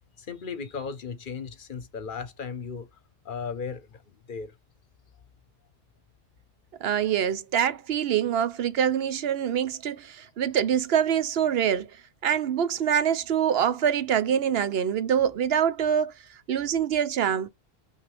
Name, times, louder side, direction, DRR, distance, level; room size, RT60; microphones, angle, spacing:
voice 1, 0.2-2.9 3.2-3.9 4.3-4.5, left 5 dB, 60° left, 0.9 m, -35 dB
voice 2, 6.8-11.9 12.2-16.1 16.5-17.5, right 9 dB, 75° right, 0.9 m, -25 dB
5.8 x 2.8 x 3.1 m
omnidirectional pair, 1.0 m